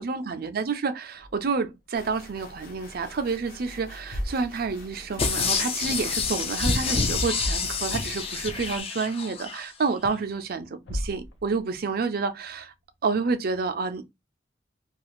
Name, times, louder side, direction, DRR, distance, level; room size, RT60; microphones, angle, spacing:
voice 1, 0.0-12.7 13.0-14.0, right 4 dB, 55° right, 0.5 m, -29 dB
sound 1, 1.1-2.8 3.1-3.4 3.9-5.7 6.0-6.7 6.9-7.0 7.3-8.3 8.7-8.8 9.4-9.5 10.5-10.6 10.8-11.8, equal, 80° left, 0.8 m, -37 dB
sound 2, 1.9-5.4 5.8-8.8, left 1 dB, 50° left, 0.8 m, -46 dB
sound 3, 5.2-9.6 10.1-10.2, left 4 dB, 30° left, 0.4 m, -27 dB
2.4 x 2.4 x 2.9 m
head